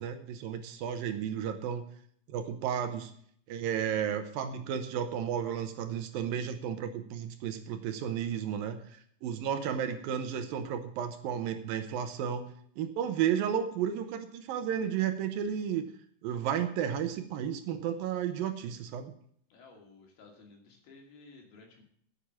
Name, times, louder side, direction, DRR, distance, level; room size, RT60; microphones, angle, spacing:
voice 1, 0.0-1.9 2.3-3.1 3.5-15.9 16.2-19.1, right 8 dB, 75° right, 8 dB, 2.5 m, -33 dB
voice 2, 19.5-21.8, left 3 dB, 75° left, 1 dB, 4.4 m, -55 dB
9.9 x 8.4 x 7.5 m, 0.63 s
omnidirectional pair, 4.4 m